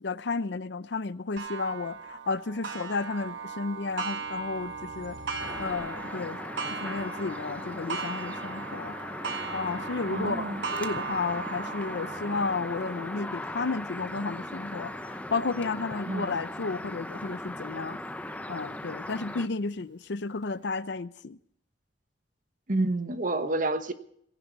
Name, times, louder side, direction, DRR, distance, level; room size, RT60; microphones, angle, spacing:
voice 1, 0.0-5.2 5.6-6.4 6.7-9.0 9.5-18.0 18.5-21.4, left 4 dB, 65° left, 0.6 m, -32 dB
Clock, 1.4-16.7 17.3-17.4 17.9-18.0 19.0-19.1, right 5 dB, 65° right, 1.3 m, -39 dB
sound 1, 3.0-6.0, equal, 85° right, 6.3 m, -52 dB
sound 2, 5.4-19.5, left 1 dB, 10° left, 0.8 m, -38 dB
voice 2, 10.1-10.6 16.1-16.4 22.7-23.9, right 2 dB, 45° right, 1.1 m, -29 dB
19.0 x 16.5 x 4.0 m
head